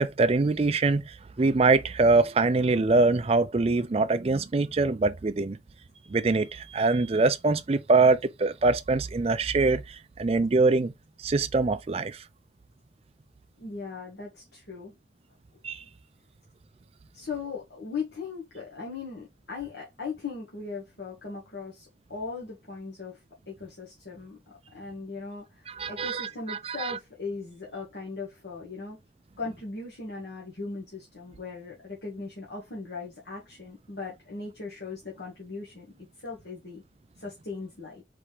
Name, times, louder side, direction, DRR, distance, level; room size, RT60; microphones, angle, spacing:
voice 1, 0.0-5.6 6.1-10.9 11.2-12.2 15.6-15.8 25.8-27.0, right 3 dB, 35° right, 0.4 m, -24 dB
voice 2, 13.6-14.9 17.1-29.0 29.4-36.8 37.2-38.0, left 4 dB, 65° left, 1.5 m, -38 dB
4.1 x 3.6 x 3.2 m
head